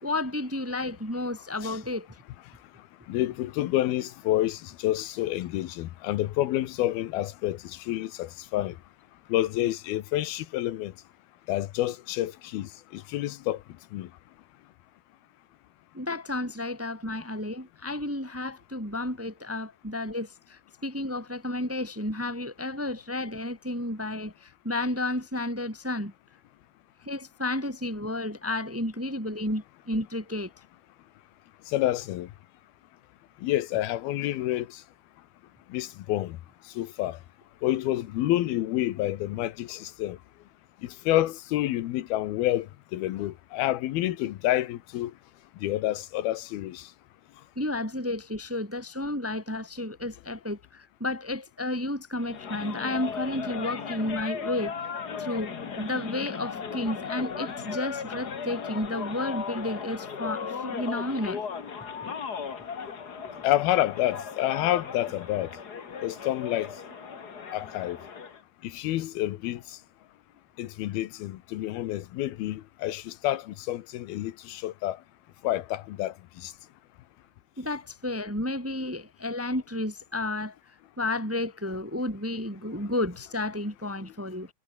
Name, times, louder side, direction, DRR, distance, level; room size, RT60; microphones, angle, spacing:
voice 1, 0.0-2.1 15.9-26.1 27.0-30.5 47.6-54.7 55.2-55.5 55.8-61.4 77.6-80.6 81.0-84.5, left 1 dB, 5° right, 1.8 m, -32 dB
voice 2, 3.1-8.7 9.3-10.9 11.5-13.6 13.9-14.1 31.7-32.3 33.4-34.7 35.7-36.4 36.8-37.2 37.6-40.2 40.8-42.7 42.9-45.1 45.6-46.8 63.4-65.5 66.0-66.7 67.5-68.0 68.6-69.6 70.6-75.0 75.4-76.1 76.4-76.5, left 14 dB, 80° left, 3.0 m, -28 dB
sound 1, 52.2-68.4, left 6 dB, 40° left, 1.5 m, -37 dB
sound 2, 55.2-59.8 60.5-62.1 62.4-63.6 64.0-64.1 64.6-65.9 66.7-67.4, right 4 dB, 85° right, 9.5 m, -57 dB
omnidirectional pair, 4.3 m